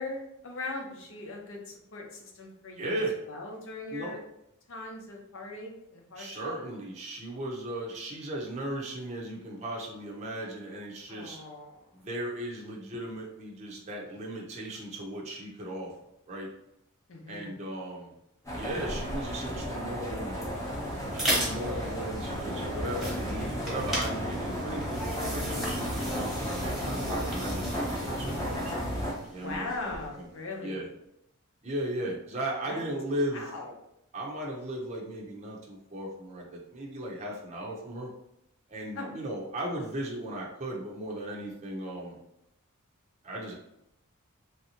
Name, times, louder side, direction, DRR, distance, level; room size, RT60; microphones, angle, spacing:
voice 1, 0.0-3.0 3.3-4.2 4.7-6.6 11.1-12.0 17.1-17.6 29.4-30.9 32.6-32.8 33.3-33.7 38.9-39.1, left 3 dB, 65° left, 1 dB, 0.8 m, -40 dB
voice 2, 2.8-3.2 3.9-4.2 6.2-11.4 12.0-15.9 16.3-16.5 17.3-18.1 18.5-20.4 21.1-28.7 29.3-29.7 30.2-30.3 30.6-30.9 31.6-33.4 34.1-38.1 38.7-42.2 43.2-43.6, right 1 dB, 30° right, -3 dB, 0.6 m, -36 dB
sound 1, 18.4-29.1, equal, 15° left, 0.7 m, -34 dB
sound 2, 20.4-30.2, equal, ahead, 1.1 m, -36 dB
3.3 x 2.7 x 2.8 m, 0.81 s
head